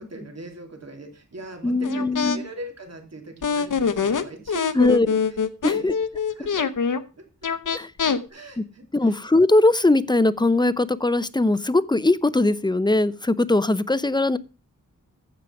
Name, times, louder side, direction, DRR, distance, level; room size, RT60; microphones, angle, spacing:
voice 1, 0.0-5.4 5.7-5.9 6.3-6.7 7.2-7.5 8.3-9.2, right 1 dB, 50° right, 3 dB, 3.1 m, -40 dB
voice 2, 1.6-2.4 4.7-5.1 5.6-5.9 7.7-7.9 8.6-8.7 8.9-14.4, left 2 dB, 15° left, 16 dB, 0.7 m, -20 dB
sound 1, 1.8-2.4 3.4-7.0 7.4-8.2, left 6 dB, 65° left, 0.9 m, -24 dB
14.5 x 5.0 x 5.9 m, 0.33 s
wide cardioid pair, 60°, 33 cm